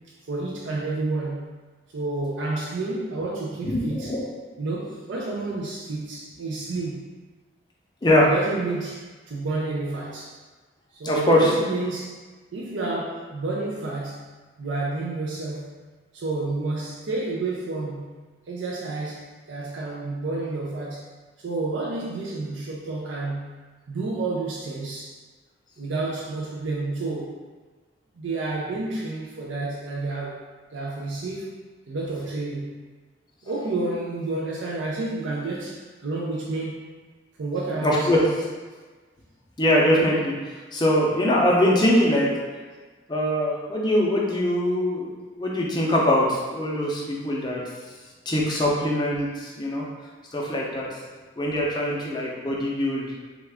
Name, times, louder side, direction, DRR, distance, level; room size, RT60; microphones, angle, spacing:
voice 1, 0.3-1.5 1.9-4.2 4.6-7.1 8.2-10.4 10.9-12.2 12.5-15.7 16.1-18.2 18.5-21.1 21.4-23.6 23.9-25.2 25.8-27.4 28.2-30.4 30.7-31.5 31.9-32.8 33.4-36.8 37.4-38.3, right 3 dB, 80° right, -3 dB, 0.4 m, -30 dB
voice 2, 3.6-4.3 8.0-8.3 11.0-11.5 37.8-38.2 39.6-40.3 40.7-42.3 43.1-47.6 48.3-49.8 50.3-50.9 51.4-53.1, left 1 dB, 20° left, -3 dB, 0.5 m, -22 dB
3.5 x 2.4 x 3.4 m, 1.3 s
head